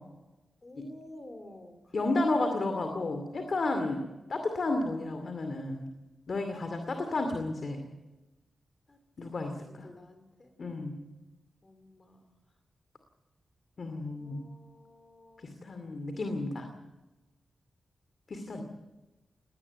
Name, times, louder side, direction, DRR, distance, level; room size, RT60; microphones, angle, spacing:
voice 1, 0.6-2.5 3.9-4.1 6.5-7.6 8.9-10.5 11.6-12.4 14.0-15.5 15.8-16.9, left 1 dB, 30° left, 8 dB, 3.4 m, -53 dB
voice 2, 1.9-5.9 6.3-7.8 9.2-9.9 10.6-11.0 13.8-14.4 15.4-16.7 18.3-18.6, left 2 dB, 50° left, 6 dB, 2.5 m, -32 dB
19.5 x 18.5 x 8.2 m, 1.1 s
wide cardioid pair, 110°, 0 cm